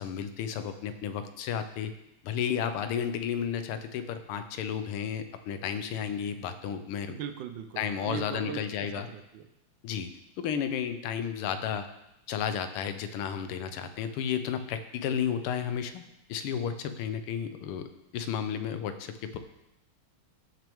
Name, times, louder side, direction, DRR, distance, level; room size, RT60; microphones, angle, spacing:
voice 1, 0.0-1.9 2.2-7.2 7.8-9.1 9.8-10.1 10.4-11.9 12.3-16.0 16.3-19.4, left 8 dB, 90° left, 10 dB, 1.6 m, -32 dB
voice 2, 7.1-8.6 8.9-9.5, right 9 dB, 70° right, 9 dB, 1.3 m, -39 dB
15.0 x 5.9 x 3.6 m, 0.89 s
omnidirectional pair, 2.4 m